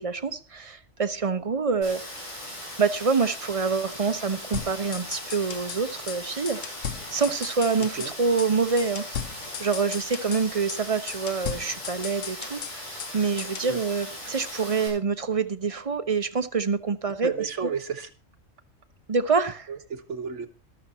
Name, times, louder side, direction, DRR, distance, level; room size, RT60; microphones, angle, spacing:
voice 1, 0.0-2.0 2.8-6.6 7.1-9.2 9.6-17.5 19.1-19.7, right 5 dB, 35° right, 10 dB, 0.7 m, -26 dB
Rain, 1.8-14.9, left 1 dB, 35° left, 7.9 m, -39 dB
sound 1, 4.5-5.8 6.1-6.2 6.5-8.1 8.4-8.5 8.8-10.4 10.7-10.8 11.1-13.1 13.4-13.7, left 8 dB, 80° left, 1.3 m, -36 dB
voice 2, 17.2-18.1 19.7-20.5, right 6 dB, 70° right, 6 dB, 1.6 m, -32 dB
13.5 x 12.0 x 4.2 m, 0.34 s
omnidirectional pair, 1.3 m